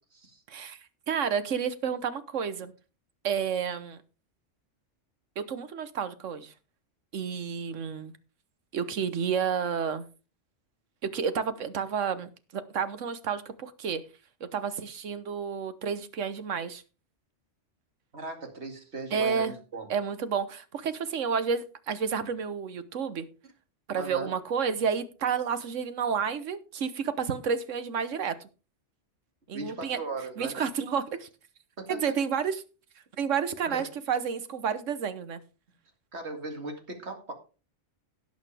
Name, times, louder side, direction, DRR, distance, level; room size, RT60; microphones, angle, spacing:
voice 1, 0.5-2.7 3.2-4.0 5.4-6.5 7.1-8.1 8.7-10.1 11.0-14.0 14.4-16.8 19.1-19.5 19.9-23.3 23.9-28.4 29.5-30.0 30.4-31.3 31.9-32.6 33.2-35.4, right 6 dB, 85° right, 12 dB, 1.4 m, -30 dB
voice 2, 18.1-19.9 24.0-24.3 29.5-30.6 31.8-32.0 33.7-33.9 36.1-37.3, right 3 dB, 65° right, 3 dB, 2.6 m, -38 dB
17.0 x 6.4 x 3.4 m, 0.34 s
omnidirectional pair, 1.2 m